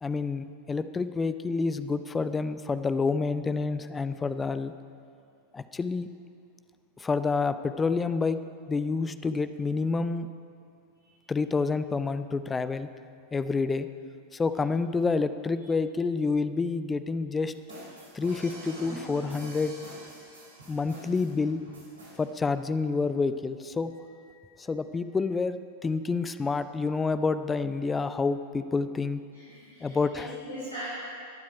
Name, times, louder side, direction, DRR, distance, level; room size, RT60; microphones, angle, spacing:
voice 1, 0.0-4.7 5.5-6.1 7.0-8.4 8.7-10.3 11.3-12.9 13.3-13.9 14.3-17.5 18.1-19.7 20.7-21.6 22.2-23.9 24.6-29.2 29.8-30.3, left 4 dB, 15° left, 12 dB, 0.5 m, -28 dB
sound 1, 17.5-22.2, right 1 dB, 70° right, 3.6 m, -45 dB
voice 2, 29.3-31.0, right 1 dB, 85° left, -11 dB, 4.0 m, -40 dB
21.5 x 7.4 x 5.0 m, 2.4 s
figure-of-eight pair, 90°, 0 cm